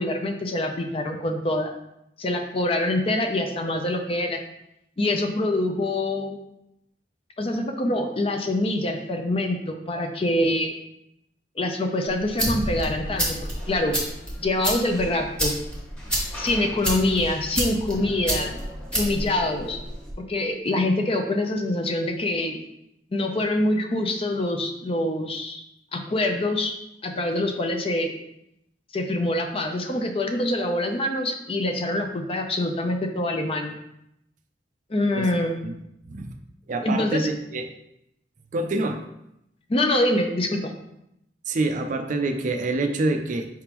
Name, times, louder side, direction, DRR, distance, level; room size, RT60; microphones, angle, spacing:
voice 1, 0.0-1.7 2.2-4.4 5.0-6.4 7.4-10.7 11.6-14.0 14.4-15.5 16.4-18.5 18.9-19.8 20.3-22.6 23.1-25.6 25.9-26.7 27.0-28.1 28.9-33.7 34.9-35.6 36.8-37.3 39.7-40.7, left 1 dB, 30° left, 4 dB, 0.5 m, -25 dB
sound 1, 12.1-20.1, equal, 5° left, 1.4 m, -30 dB
voice 2, 36.7-37.7 38.5-39.0 41.5-43.5, right 2 dB, 45° right, 5 dB, 0.4 m, -26 dB
4.8 x 3.6 x 3.0 m, 0.81 s
head